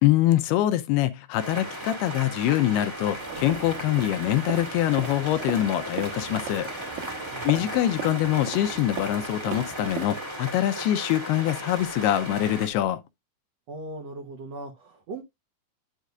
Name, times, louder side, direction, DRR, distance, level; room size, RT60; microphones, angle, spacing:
voice 1, 0.0-6.7 7.4-13.0, left 13 dB, 80° left, 2.5 m, -24 dB
sound 1, 1.3-12.7, right 1 dB, 20° right, 0.8 m, -36 dB
sound 2, 3.2-10.1, right 8 dB, 65° right, 1.9 m, -38 dB
voice 2, 7.3-7.7 13.7-15.2, right 2 dB, 85° right, 1.4 m, -39 dB
9.3 x 7.4 x 2.4 m
omnidirectional pair, 4.8 m